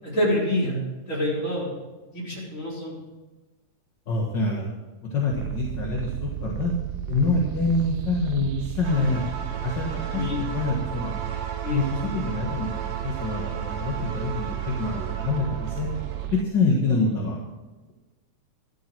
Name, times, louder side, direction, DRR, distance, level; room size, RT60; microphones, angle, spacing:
voice 1, 0.0-1.7 2.1-3.0 10.1-10.4 11.6-11.8, left 1 dB, 25° left, -5 dB, 4.2 m, -27 dB
voice 2, 4.1-4.7 5.1-6.7 7.1-9.2 9.6-11.1 11.7-12.7 13.0-15.9 16.3-17.4, left 3 dB, 45° left, -2 dB, 1.9 m, -26 dB
sound 1, 5.3-16.4, right 14 dB, 80° right, 1.8 m, -33 dB
sound 2, 8.8-16.3, right 6 dB, 60° right, 2.5 m, -37 dB
13.0 x 12.5 x 4.7 m, 1.2 s
omnidirectional pair, 3.7 m